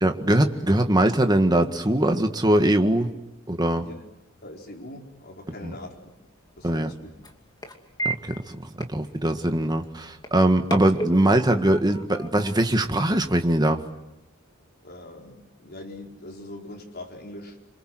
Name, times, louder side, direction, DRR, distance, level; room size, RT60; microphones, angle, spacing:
voice 1, 0.0-3.1 3.5-3.9 5.6-5.7 6.6-6.9 8.1-8.2 8.9-13.8, right 1 dB, 20° right, 6 dB, 1.8 m, -21 dB
voice 2, 4.4-6.1 6.6-7.1 14.8-17.6, left 1 dB, 50° left, 0 dB, 4.8 m, -42 dB
sound 1, 5.9-13.7, right 2 dB, 20° left, 2.5 m, -38 dB
28.0 x 26.0 x 7.8 m, 0.92 s
head